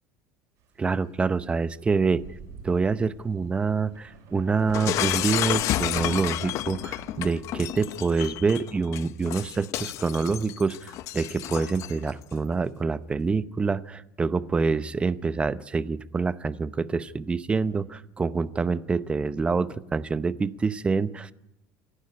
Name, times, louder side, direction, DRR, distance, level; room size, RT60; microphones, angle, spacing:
voice 1, 0.8-2.3 2.6-21.3, right 4 dB, 15° right, 14 dB, 0.8 m, -26 dB
Thunder, 1.7-1.8 2.1-7.9, right 5 dB, 60° right, 7.0 m, -45 dB
Shatter, 4.7-12.1, left 14 dB, 55° left, 0.7 m, -30 dB
27.5 x 11.5 x 9.7 m, 0.89 s
supercardioid pair, 125°, 6 cm